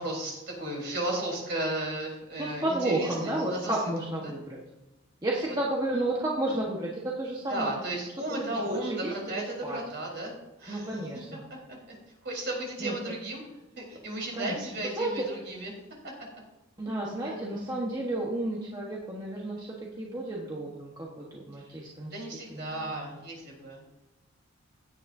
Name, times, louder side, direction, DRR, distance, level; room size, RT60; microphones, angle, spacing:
voice 1, 0.0-3.7 4.2-4.3 7.5-10.9 11.7-12.0 12.2-13.4 13.8-15.7 16.0-16.1 17.2-17.4 21.6-21.7 22.1-23.8, right 1 dB, 55° right, -2 dB, 4.1 m, -34 dB
voice 2, 2.4-4.6 5.2-7.7 8.3-9.8 10.7-11.4 12.8-12.9 14.4-14.5 14.8-15.3 16.8-22.2 22.5-23.1, right 1 dB, 20° right, -4 dB, 1.2 m, -32 dB
16.5 x 9.6 x 2.7 m, 0.98 s
head